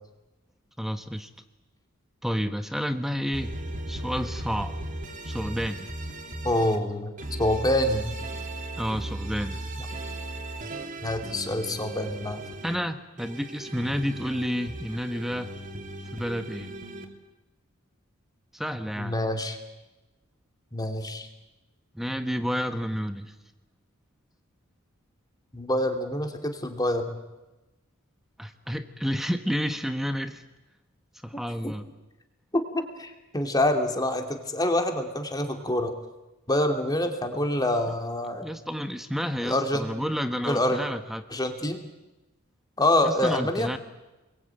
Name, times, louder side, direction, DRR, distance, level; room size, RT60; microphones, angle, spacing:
voice 1, 0.8-1.3 2.2-3.6 3.9-4.8 5.2-5.9 8.8-9.6 12.6-15.5 16.1-16.7 18.5-19.1 21.9-23.3 28.4-30.4 31.2-31.9 38.4-41.2 43.0-43.8, equal, ahead, 8 dB, 1.2 m, -30 dB
sound 1, 3.3-6.8 7.2-12.7 13.2-17.0, right 1 dB, 40° right, 3.4 m, -37 dB
voice 2, 6.4-7.1 7.4-8.1 11.0-12.4 19.0-19.6 20.7-21.3 25.5-27.2 31.6-31.7 32.5-35.9 36.5-38.5 39.4-39.9 40.4-40.8 41.3-41.8 42.8-43.7, left 1 dB, 20° left, 5 dB, 2.8 m, -26 dB
29.0 x 22.0 x 9.1 m, 1.1 s
head